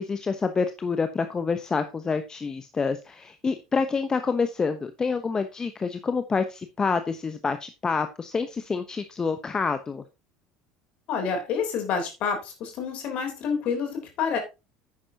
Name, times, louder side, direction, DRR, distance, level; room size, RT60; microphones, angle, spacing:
voice 1, 0.0-10.0, left 5 dB, 25° left, 9 dB, 1.0 m, -27 dB
voice 2, 11.1-14.4, left 6 dB, 50° left, 5 dB, 3.6 m, -28 dB
10.0 x 9.7 x 2.9 m, 0.27 s
figure-of-eight pair, 65°, 3 cm